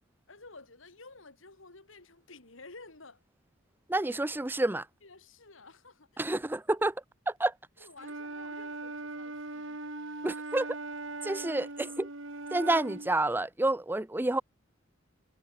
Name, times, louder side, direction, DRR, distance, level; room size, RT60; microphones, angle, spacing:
voice 1, 0.3-3.2 4.1-4.2 5.0-6.2 7.8-9.8 11.2-12.0, left 3 dB, 80° left, 3.3 m, -52 dB
voice 2, 3.9-4.8 6.2-6.9 7.3-7.5 10.2-10.7 11.2-12.1 12.5-14.4, right 2 dB, 10° right, 0.5 m, -29 dB
Wind instrument woodwind instrument, 8.0-13.1, right 2 dB, 75° right, 3.3 m, -40 dB
head